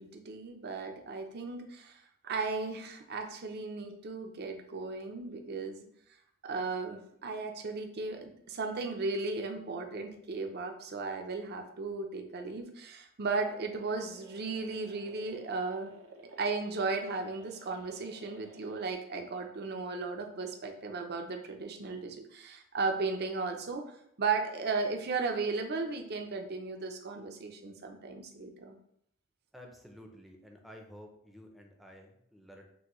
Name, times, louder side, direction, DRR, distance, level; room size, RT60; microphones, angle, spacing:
voice 1, 0.0-5.9 6.4-15.9 16.4-28.8, right 4 dB, 50° right, 4 dB, 0.6 m, -36 dB
sound 1, 13.4-18.9, right 3 dB, 85° right, 0.8 m, -55 dB
voice 2, 29.5-32.7, equal, ahead, 1 dB, 0.6 m, -52 dB
6.1 x 2.7 x 3.0 m, 0.72 s
head